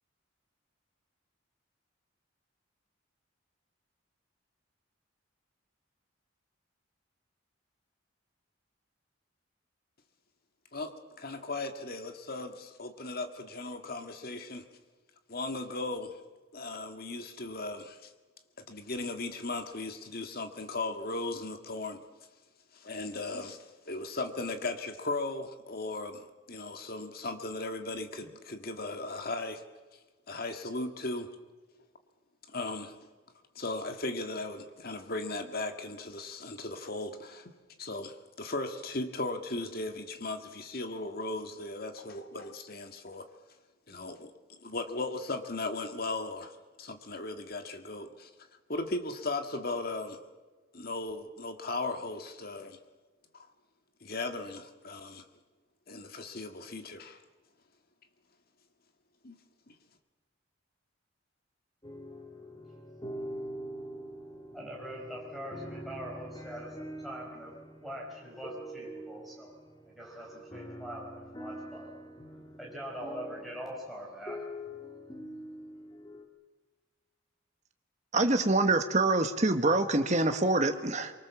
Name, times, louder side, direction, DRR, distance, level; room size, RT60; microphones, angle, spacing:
voice 1, 10.7-14.7 15.3-16.1 16.5-18.1 18.6-22.0 22.7-29.6 29.9-30.0 30.3-31.3 32.5-33.1 33.5-37.5 37.8-43.2 43.9-48.3 48.7-50.2 50.7-52.8 53.3-53.5 54.0-55.2 55.9-57.2 59.2-59.4 59.7-59.8, left 2 dB, 45° left, 7 dB, 1.8 m, -37 dB
sound 1, 61.8-76.2, equal, 20° left, 2.4 m, -44 dB
voice 2, 64.5-67.5 67.8-69.5 69.8-72.0 72.6-74.4, equal, ahead, -4 dB, 5.0 m, -43 dB
voice 3, 78.1-81.1, right 2 dB, 35° right, 7 dB, 1.4 m, -25 dB
24.0 x 24.0 x 7.2 m, 1.3 s
head